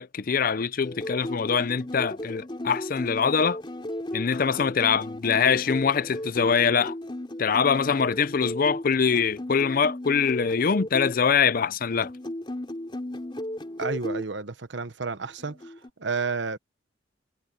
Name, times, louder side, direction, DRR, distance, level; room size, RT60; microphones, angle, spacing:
voice 1, 0.0-3.6 4.1-6.9 7.4-12.1, left 6 dB, 50° left, 0.5 m, -23 dB
sound 1, 0.8-11.1 11.9-14.2 15.4-15.9, left 1 dB, 25° left, 3.1 m, -35 dB
voice 2, 13.8-15.7 16.0-16.6, right 4 dB, 65° right, 1.1 m, -31 dB
head